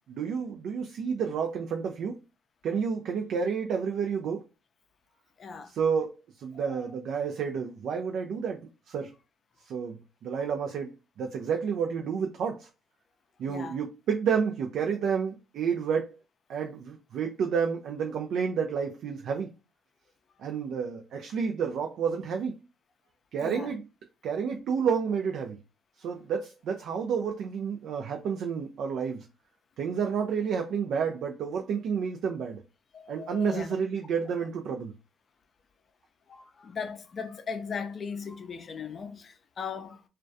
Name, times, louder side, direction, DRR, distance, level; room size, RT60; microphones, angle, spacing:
voice 1, 0.1-2.2 2.6-4.4 5.7-8.6 8.9-9.1 9.6-10.9 11.2-12.7 13.4-16.2 16.5-19.5 20.4-22.6 23.3-23.8 24.2-25.6 26.0-29.3 29.8-32.6 33.1-34.9, right 6 dB, 70° right, 0.3 m, -30 dB
voice 2, 5.4-5.7 6.5-6.9 10.4-10.5 13.5-13.8 23.4-23.7 32.9-33.7 36.3-40.0, left 6 dB, 50° left, 0.4 m, -38 dB
2.2 x 2.2 x 2.5 m
supercardioid pair, 60°, 0 cm